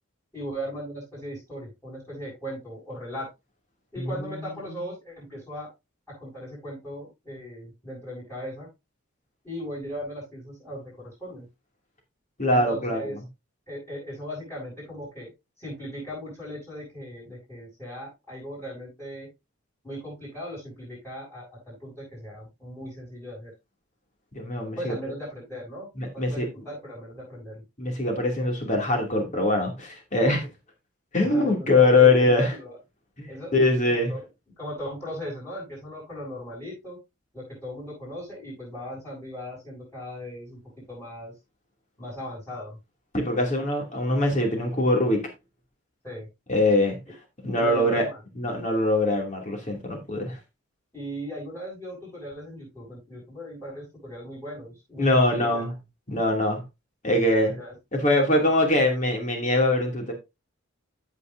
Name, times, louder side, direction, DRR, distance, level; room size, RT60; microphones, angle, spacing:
voice 1, 0.3-3.3 3.9-5.7 6.1-8.7 9.4-11.5 12.5-13.2 13.7-15.3 15.6-19.3 19.8-23.5 24.8-27.6 31.2-32.8 33.3-34.2 34.6-37.0 37.3-40.6 40.9-41.3 42.0-42.8 46.0-46.3 47.5-48.2 50.9-55.7 57.3-57.7, equal, 10° left, 6.7 m, -38 dB
voice 2, 12.4-13.0 24.3-24.9 26.0-26.5 27.8-30.5 31.1-32.5 33.2-34.1 43.1-45.2 46.5-47.0 47.4-48.0 48.4-50.4 55.0-55.7 56.1-56.6 57.0-57.5 57.9-60.1, left 2 dB, 35° left, 2.5 m, -22 dB
15.0 x 5.7 x 2.6 m
head